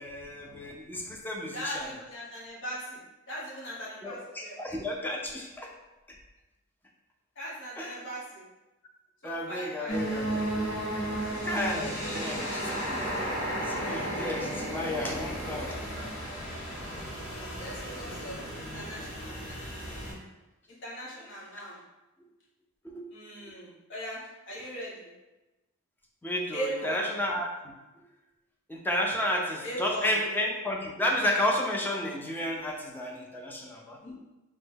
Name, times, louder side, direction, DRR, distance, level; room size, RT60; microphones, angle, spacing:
voice 1, 0.0-1.9 4.0-5.7 6.1-6.2 7.8-8.1 9.2-10.5 11.4-16.1 22.8-23.1 23.5-23.6 26.2-27.5 28.7-34.0, left 1 dB, 10° left, 0 dB, 0.4 m, -32 dB
voice 2, 1.5-3.0 3.3-4.6 7.4-8.4 9.2-10.0 12.0-12.4 14.9-15.2 15.4-16.0 17.6-19.4 20.7-21.8 23.1-25.1 26.5-27.1 29.6-30.1 34.0-34.1, equal, 60° left, -7 dB, 1.1 m, -39 dB
sound 1, 9.9-20.1, right 1 dB, 80° left, 1.0 m, -34 dB
3.0 x 2.1 x 3.4 m, 1.0 s
head